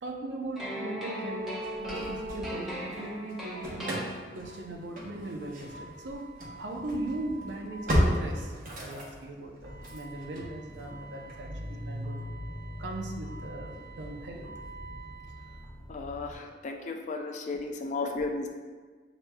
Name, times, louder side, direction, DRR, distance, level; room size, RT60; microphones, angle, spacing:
voice 1, 0.0-6.3 6.6-12.2 12.8-14.5 17.9-18.0, right 2 dB, 90° right, 1 dB, 0.6 m, -39 dB
sound 1, 0.6-4.7, equal, ahead, 0.8 m, -38 dB
Engine starting / Slam, 1.6-3.0 3.3-16.3, equal, 50° right, 0.9 m, -36 dB
voice 2, 15.9-18.5, left 3 dB, 45° left, 3 dB, 0.4 m, -34 dB
6.7 x 3.0 x 2.2 m, 1.5 s
head